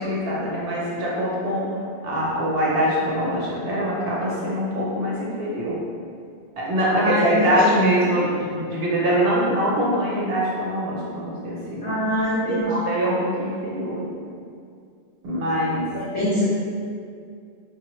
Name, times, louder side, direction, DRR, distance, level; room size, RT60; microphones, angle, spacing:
voice 1, 0.0-5.8 6.6-12.0 12.4-14.2 15.2-15.9 16.2-16.3, equal, 65° right, -5 dB, 0.7 m, -24 dB
voice 2, 6.8-7.9 11.8-12.7 15.9-16.4, equal, 55° left, -8 dB, 0.3 m, -24 dB
3.8 x 2.0 x 2.9 m, 2.3 s
omnidirectional pair, 1.1 m